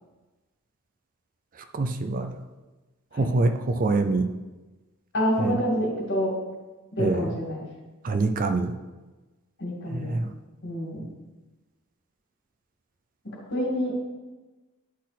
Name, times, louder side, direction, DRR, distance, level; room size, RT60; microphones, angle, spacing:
voice 1, 1.7-2.3 3.2-4.3 5.4-5.5 7.0-7.2 8.0-8.7 9.9-10.3, right 3 dB, 40° right, 8 dB, 0.4 m, -24 dB
voice 2, 5.1-6.3 7.0-7.6 9.6-10.1 10.6-11.1 13.2-13.9, equal, 55° left, -3 dB, 2.2 m, -27 dB
10.0 x 4.1 x 4.1 m, 1.2 s
head